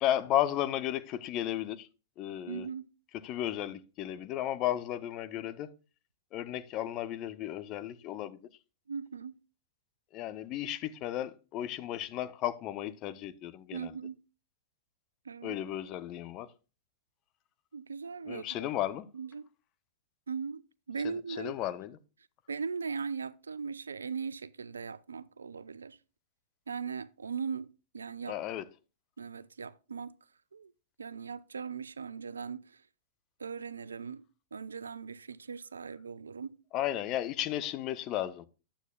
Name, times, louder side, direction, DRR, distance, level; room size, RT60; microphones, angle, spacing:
voice 1, 0.0-1.9 2.2-2.7 3.2-5.7 6.3-8.4 10.1-14.0 15.4-16.5 18.3-19.1 21.0-22.0 28.3-28.7 36.7-38.5, left 12 dB, 40° left, 0.7 m, -34 dB
voice 2, 2.5-2.9 8.9-9.4 13.7-14.2 15.3-15.6 17.7-18.7 19.1-19.5 20.3-20.6 20.9-21.5 22.5-26.0 26.7-28.4 29.2-30.1 30.5-30.7 31.0-32.8 33.4-34.2 34.5-36.6, right 5 dB, 80° right, 0.4 m, -39 dB
11.5 x 8.0 x 2.3 m
figure-of-eight pair, 100°, 0 cm